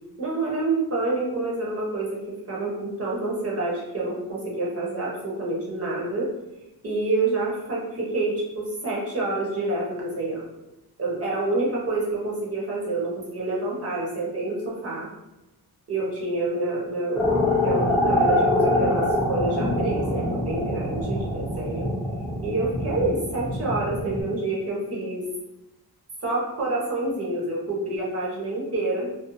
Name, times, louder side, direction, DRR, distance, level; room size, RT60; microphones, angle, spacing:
voice 1, 0.2-6.3 6.8-10.5 11.0-15.1 15.9-17.3 17.6-21.9 22.4-25.2 26.2-29.1, right 2 dB, 40° right, -4 dB, 0.8 m, -27 dB
sound 1, 17.2-24.2, left 1 dB, ahead, 0.4 m, -24 dB
2.5 x 2.3 x 2.5 m, 0.96 s
wide cardioid pair, 170°, 38 cm